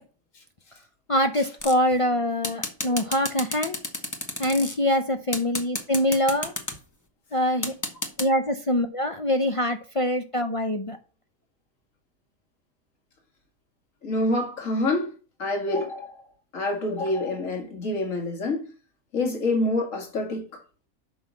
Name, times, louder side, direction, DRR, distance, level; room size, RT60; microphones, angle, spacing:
voice 1, 1.1-3.8 4.4-6.5 7.3-7.7 8.2-11.0, left 1 dB, 35° left, 0.5 m, -24 dB
Bouncing Glas Marbles, 1.6-1.9 2.4-4.7 5.3-6.8 7.6-8.3, left 1 dB, 15° left, 1.0 m, -31 dB
voice 2, 14.0-15.1 15.4-16.2 16.5-18.7 19.1-20.6, left 2 dB, 70° left, 2.2 m, -27 dB
6.2 x 5.6 x 6.3 m
omnidirectional pair, 1.4 m